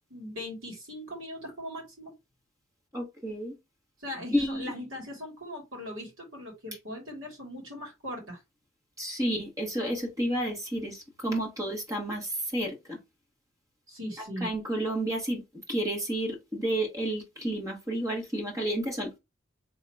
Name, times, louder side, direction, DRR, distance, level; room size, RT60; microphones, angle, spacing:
voice 1, 0.1-2.1 4.0-8.4 13.9-14.5, left 1 dB, 70° right, 2.5 m, -39 dB
voice 2, 2.9-3.6 4.3-4.7 9.0-13.0 14.4-15.4 15.7-19.2, right 1 dB, 15° right, 1.2 m, -31 dB
3.7 x 2.8 x 4.6 m
head